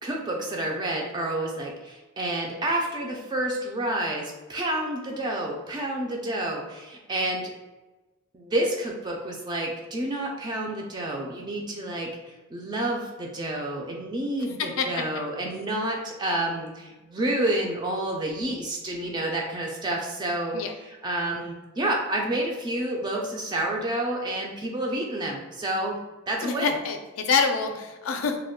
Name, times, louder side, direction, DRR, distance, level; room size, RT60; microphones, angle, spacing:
voice 1, 0.0-7.5 8.3-20.6 21.0-26.0 26.3-26.7, right 1 dB, 20° right, 0 dB, 0.3 m, -29 dB
voice 2, 14.6-14.9 20.5-20.7 26.4-28.4, left 5 dB, 70° left, 5 dB, 0.4 m, -26 dB
2.2 x 2.2 x 3.5 m, 1.1 s
head